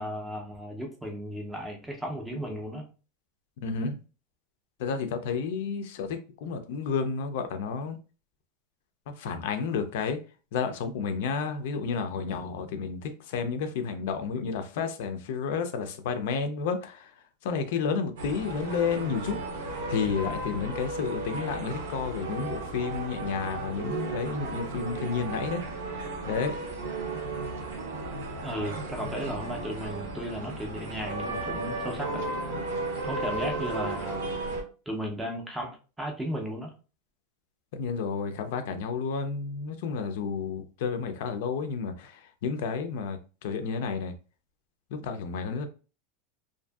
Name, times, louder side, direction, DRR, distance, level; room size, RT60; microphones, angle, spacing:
voice 1, 0.0-2.9 28.4-32.2 33.0-34.2 34.9-36.7, equal, 5° right, 0.4 m, -35 dB
voice 2, 3.6-3.9 4.8-8.0 9.2-10.2 10.5-17.1 17.4-19.4 19.9-25.6 26.3-26.6 37.7-44.1 44.9-45.7, left 5 dB, 60° left, 0.4 m, -31 dB
sound 1, 18.2-34.6, right 2 dB, 90° right, 0.7 m, -34 dB
2.6 x 2.5 x 2.2 m
supercardioid pair, 170°, 0 cm